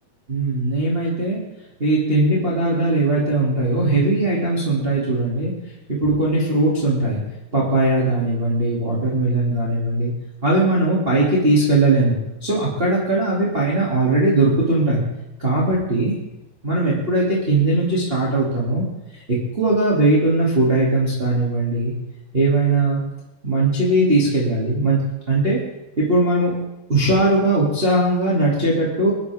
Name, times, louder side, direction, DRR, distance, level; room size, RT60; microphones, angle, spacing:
voice 1, 0.3-1.4 1.8-5.5 6.0-7.2 7.5-10.1 10.4-15.0 15.4-16.1 16.6-18.8 19.3-21.9 22.3-23.0 23.4-25.6 26.0-26.5 26.9-29.1, right 2 dB, 20° right, -5 dB, 1.9 m, -19 dB
22.0 x 11.5 x 3.6 m, 0.92 s
omnidirectional pair, 5.1 m